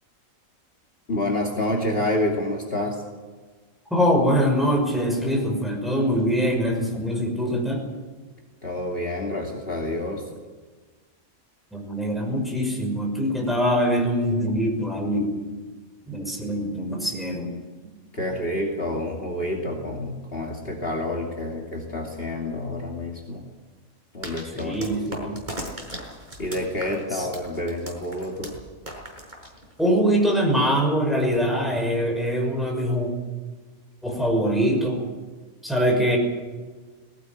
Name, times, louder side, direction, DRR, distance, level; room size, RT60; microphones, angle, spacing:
voice 1, 1.1-3.0 8.6-10.2 18.1-23.4 24.1-24.8 26.4-28.5, left 1 dB, 40° left, -1 dB, 2.9 m, -28 dB
voice 2, 3.9-7.8 11.7-15.3 16.1-17.5 24.5-25.4 27.1-27.3 29.8-33.1 34.0-35.0 35.6-36.2, equal, ahead, 1 dB, 5.8 m, -23 dB
sound 1, 24.2-30.0, equal, 30° right, 5.6 m, -38 dB
20.5 x 17.5 x 9.4 m, 1.4 s
omnidirectional pair, 1.5 m